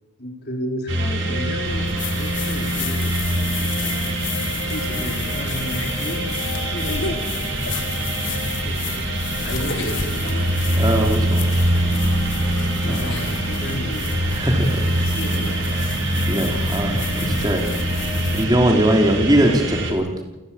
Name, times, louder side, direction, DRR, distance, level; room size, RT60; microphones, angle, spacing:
voice 1, 0.2-4.0 4.4-6.3 6.6-7.8 8.6-9.0 9.4-11.4 11.7-14.1 14.9-15.8, equal, 50° left, 2 dB, 4.9 m, -33 dB
sound 1, 0.9-19.9, right 1 dB, 65° right, 5.2 m, -24 dB
sound 2, 1.7-18.5, left 4 dB, 70° left, 2.1 m, -32 dB
voice 2, 10.8-11.5 12.9-13.1 14.3-14.8 16.3-17.9 18.3-20.1, right 1 dB, 20° right, 2 dB, 3.3 m, -20 dB
29.5 x 13.0 x 8.9 m, 1.1 s
head